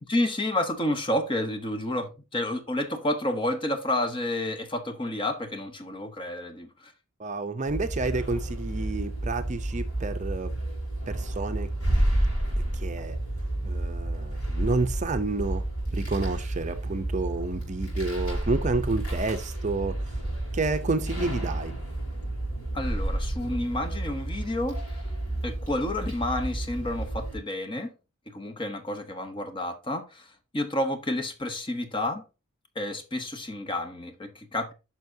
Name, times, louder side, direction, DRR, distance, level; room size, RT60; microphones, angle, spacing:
voice 1, 0.1-6.7 22.7-24.8 25.4-27.9 28.3-30.2 30.5-32.2 32.8-34.7, left 1 dB, 25° left, 0.8 m, -30 dB
voice 2, 7.2-10.5 11.1-11.7 12.7-13.2 13.6-15.6 15.9-19.9 20.5-21.7, right 3 dB, 35° right, 0.6 m, -30 dB
sound 1, 7.7-27.4, right 1 dB, 90° left, 4.3 m, -30 dB
9.3 x 5.7 x 2.7 m
head